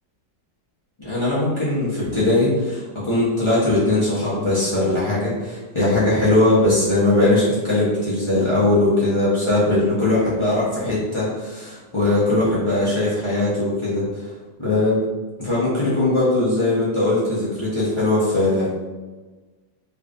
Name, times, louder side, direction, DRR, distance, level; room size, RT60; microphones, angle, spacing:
voice 1, 1.0-14.2 14.6-15.0 15.4-18.7, left 2 dB, 25° left, -10 dB, 0.8 m, -20 dB
3.2 x 3.2 x 2.5 m, 1.3 s
omnidirectional pair, 2.0 m